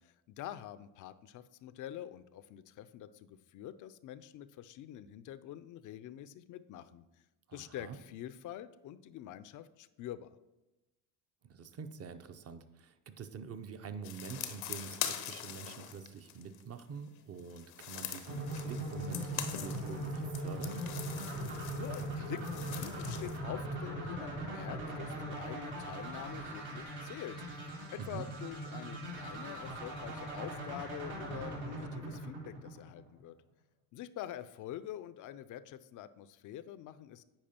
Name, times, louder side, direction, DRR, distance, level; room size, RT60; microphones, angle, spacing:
voice 1, 0.0-7.1 7.5-10.3 21.7-27.4 28.1-33.4 33.9-37.2, left 11 dB, 45° left, 14 dB, 0.4 m, -46 dB
voice 2, 7.5-8.0 11.5-20.8 28.0-28.3, right 6 dB, 30° right, 10 dB, 0.5 m, -46 dB
sound 1, 14.0-16.8 17.4-23.4, left 11 dB, 75° left, 0.8 m, -43 dB
sound 2, 18.3-33.2, right 1 dB, 80° right, 2.1 m, -40 dB
8.7 x 4.8 x 2.9 m, 1.0 s
hypercardioid pair, 65°, 48 cm